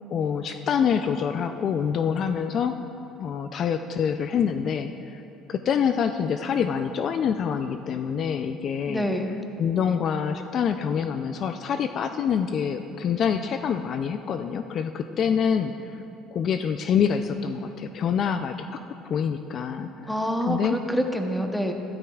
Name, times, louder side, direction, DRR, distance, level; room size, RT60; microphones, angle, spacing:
voice 1, 0.1-2.7 3.2-5.2 5.5-9.1 9.6-16.0 16.3-19.9 20.5-20.8, left 7 dB, 45° left, 8 dB, 0.3 m, -26 dB
voice 2, 8.9-9.3 20.0-21.7, equal, 5° left, 4 dB, 0.8 m, -26 dB
13.5 x 12.5 x 2.3 m, 2.9 s
cardioid pair, 120°, 0 cm